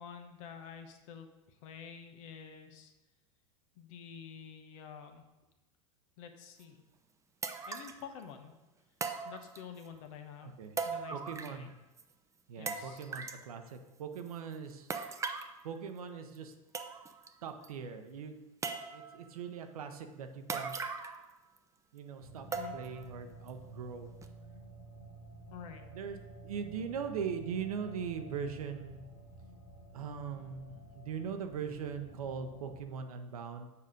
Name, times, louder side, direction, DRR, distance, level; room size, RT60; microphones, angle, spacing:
voice 1, 0.0-2.9 3.8-5.2 6.2-6.8 7.7-8.5 9.2-10.5 10.8-11.7 12.6-13.0 22.5-22.7 25.5-25.9, left 7 dB, 65° left, 6 dB, 1.0 m, -49 dB
sound 1, 6.6-6.7 7.4-8.0 9.0-9.9 10.8-11.7 12.0-12.1 12.7-13.4 14.9-15.5 16.3-16.4 16.7-17.3 17.6-17.7 18.6-19.2 20.5-21.3 21.6-21.7 22.5-23.0 23.5-23.6 24.2-24.3, right 5 dB, 15° right, 0.6 m, -39 dB
voice 2, 10.4-10.8 11.1-11.7 12.5-14.9 15.6-16.5 17.4-18.3 18.9-20.7 21.9-22.5 22.7-24.1 25.9-26.2 26.4-29.0 29.9-33.7, right 6 dB, 85° right, 7 dB, 0.8 m, -40 dB
sound 2, 22.2-32.8, right 2 dB, 85° left, 1.4 m, -52 dB
6.9 x 4.9 x 5.1 m, 1.1 s
hypercardioid pair, 100°, 18 cm